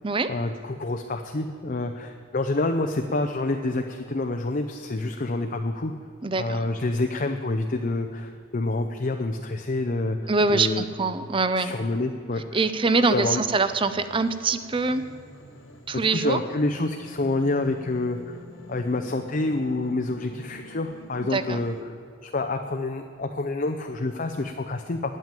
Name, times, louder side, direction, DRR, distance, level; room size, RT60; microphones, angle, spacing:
voice 1, 0.3-5.9 6.4-10.2 10.5-10.8 11.6-12.6 12.9-13.4 16.1-18.4 18.7-21.9 22.2-25.2, left 2 dB, 40° left, 5 dB, 0.6 m, -27 dB
voice 2, 6.2-6.6 10.3-11.7 12.5-15.0 15.9-16.4 21.3-21.6, right 3 dB, 25° right, 12 dB, 0.5 m, -24 dB
sound 1, 13.2-21.8, equal, 75° left, 1.9 m, -47 dB
9.1 x 9.1 x 8.9 m, 2.5 s
head